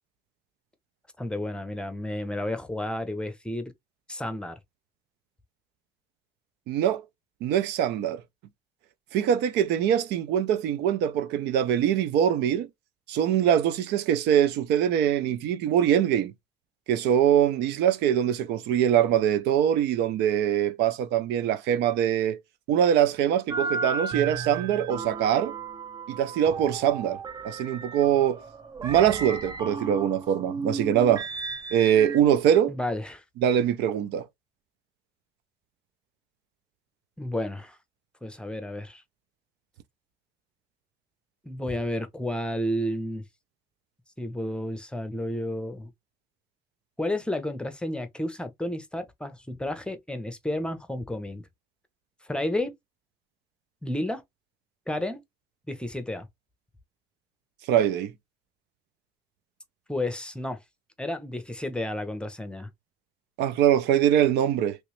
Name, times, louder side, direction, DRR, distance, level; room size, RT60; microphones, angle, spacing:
voice 1, 1.2-3.7 4.1-4.6 32.7-33.2 37.2-37.8 38.2-39.0 41.4-43.2 44.2-45.9 47.0-51.5 52.2-52.7 53.8-54.2 54.9-55.2 55.7-56.3 59.9-60.6 61.0-62.7, left 1 dB, 5° left, 0.7 m, -31 dB
voice 2, 6.7-7.1 7.4-8.2 9.1-12.7 13.1-16.3 16.9-22.4 22.7-25.6 26.1-27.2 27.4-28.4 28.8-31.3 31.7-32.8 33.4-34.3 57.7-58.1 63.4-64.8, right 10 dB, 85° right, 0.5 m, -23 dB
sound 1, 23.5-32.2, right 4 dB, 25° right, 0.4 m, -34 dB
3.0 x 3.0 x 3.0 m
cardioid pair, 110°, 17 cm